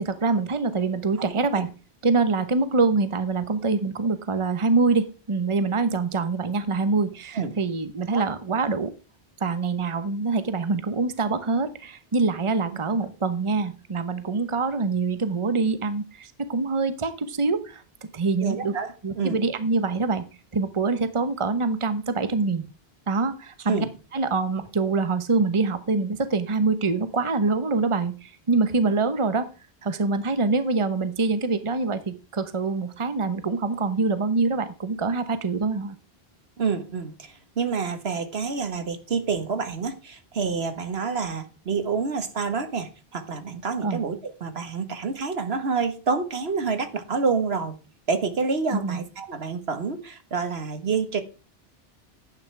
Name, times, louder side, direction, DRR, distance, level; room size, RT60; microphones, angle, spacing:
voice 1, 0.0-1.7 2.0-8.9 9.4-17.8 18.1-18.8 19.0-20.3 20.5-22.7 23.1-23.9 24.1-29.5 29.8-35.9 43.8-44.0 48.7-49.0, right 3 dB, 30° right, 1.0 m, -25 dB
voice 2, 18.4-19.4 23.7-23.9 36.6-47.7 48.1-51.2, right 5 dB, 75° right, 1.6 m, -28 dB
11.0 x 9.7 x 3.3 m
omnidirectional pair, 1.1 m